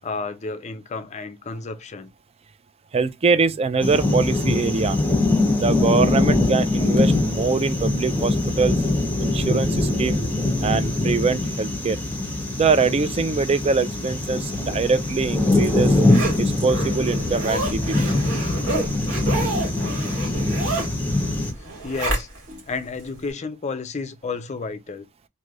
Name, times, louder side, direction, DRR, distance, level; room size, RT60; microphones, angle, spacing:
voice 1, 0.0-2.1 21.8-22.3 22.7-25.1, left 4 dB, 35° left, 0.4 m, -31 dB
voice 2, 2.9-5.0 5.5-8.8 9.2-10.2 10.6-12.0 12.6-16.0 16.3-18.1, right 4 dB, 30° right, 0.3 m, -23 dB
sound 1, 3.8-21.5, left 2 dB, 10° left, 0.8 m, -22 dB
Zipper (clothing), 15.0-22.6 23.0-23.1, right 2 dB, 60° right, 1.9 m, -30 dB
3.2 x 2.6 x 2.4 m
head